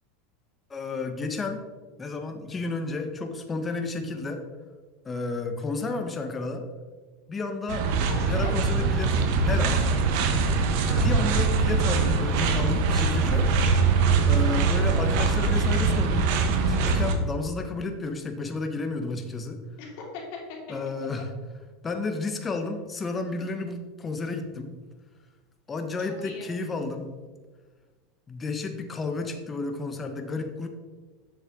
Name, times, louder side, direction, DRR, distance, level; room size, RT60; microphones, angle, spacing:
voice 1, 0.7-1.6 2.0-4.4 5.0-6.6 7.3-7.9 8.3-9.8 11.0-13.5 14.3-19.6 20.7-21.3 21.8-24.7 25.7-27.1 28.3-30.7, left 3 dB, 20° left, 6 dB, 0.9 m, -32 dB
sound 1, 7.7-17.2, right 4 dB, 65° right, 1.0 m, -23 dB
voice 2, 7.8-8.5 10.8-11.0 19.8-20.4 26.1-26.5, left 4 dB, 65° left, -1 dB, 2.5 m, -40 dB
7.4 x 6.6 x 3.6 m, 1.3 s
supercardioid pair, 130°, 0 cm